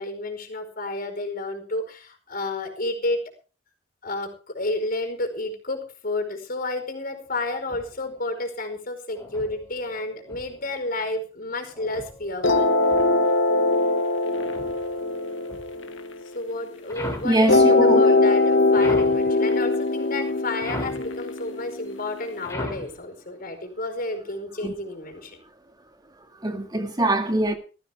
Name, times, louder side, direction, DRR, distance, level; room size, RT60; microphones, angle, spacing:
voice 1, 0.0-3.3 4.0-12.9 16.3-25.4, left 2 dB, 50° left, 5.0 m, -31 dB
sound 1, 7.2-8.2 9.1-10.8 11.7-13.4 14.3-16.0 16.9-17.5 18.7-19.3 20.6-21.1 22.4-23.0, left 1 dB, 15° left, 3.3 m, -38 dB
sound 2, 12.4-16.8 17.5-22.4, left 2 dB, 80° left, 1.9 m, -21 dB
voice 2, 17.2-18.2 24.6-24.7 26.4-27.5, right 1 dB, 20° right, 2.1 m, -23 dB
19.0 x 14.5 x 3.6 m
head